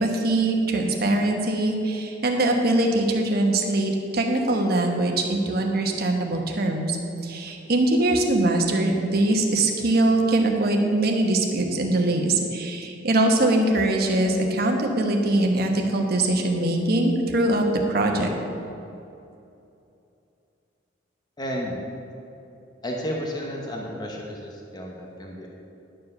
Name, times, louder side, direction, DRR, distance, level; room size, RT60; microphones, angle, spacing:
voice 1, 0.0-7.0 7.2-18.3, right 2 dB, 55° right, 2 dB, 1.1 m, -22 dB
voice 2, 21.4-21.8 22.8-25.5, equal, 20° left, -1 dB, 1.0 m, -32 dB
11.0 x 5.0 x 6.6 m, 2.7 s
head